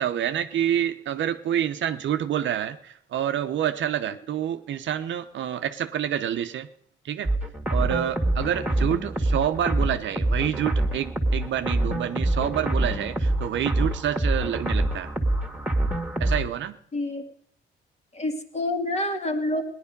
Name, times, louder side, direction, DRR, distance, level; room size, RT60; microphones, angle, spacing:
voice 1, 0.0-6.7 7.0-7.3 7.7-15.1 16.2-16.8, right 10 dB, 60° right, 9 dB, 0.8 m, -27 dB
sound 1, 7.3-16.4, right 1 dB, 5° right, 2.0 m, -25 dB
voice 2, 16.9-17.2 18.1-19.6, left 1 dB, 30° left, 5 dB, 2.0 m, -27 dB
17.0 x 11.0 x 5.3 m, 0.67 s
supercardioid pair, 75°, 21 cm